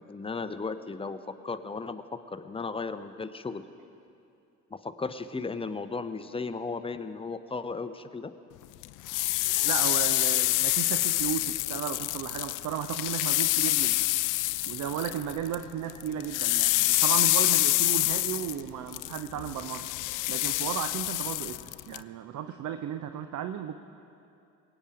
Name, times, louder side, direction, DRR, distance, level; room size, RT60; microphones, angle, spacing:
voice 1, 0.0-3.7 4.7-8.3, left 4 dB, 15° left, 10 dB, 0.8 m, -35 dB
sound 1, 8.8-15.6 15.9-22.0, left 19 dB, 50° left, 0.5 m, -27 dB
voice 2, 9.6-14.1 14.6-19.9 20.3-23.8, right 9 dB, 45° right, 9 dB, 0.7 m, -34 dB
23.0 x 9.1 x 5.0 m, 2.6 s
hypercardioid pair, 55°, 41 cm